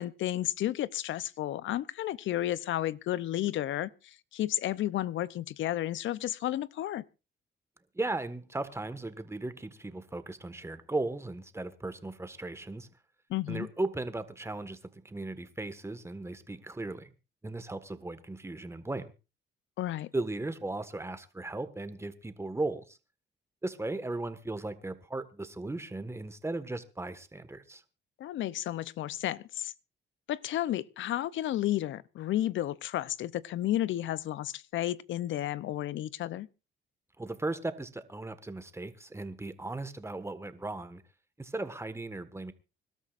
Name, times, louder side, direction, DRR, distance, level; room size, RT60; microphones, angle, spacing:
voice 1, 0.0-7.0 13.3-13.7 19.8-20.1 28.2-29.7 30.3-36.5, left 13 dB, 75° left, 0.6 m, -32 dB
voice 2, 7.9-12.9 13.5-14.8 15.0-17.1 17.4-19.1 20.1-23.0 23.6-27.8 37.2-41.0 41.4-42.5, right 2 dB, 15° right, 1.6 m, -37 dB
25.5 x 12.5 x 2.5 m
cardioid pair, 90°, 20 cm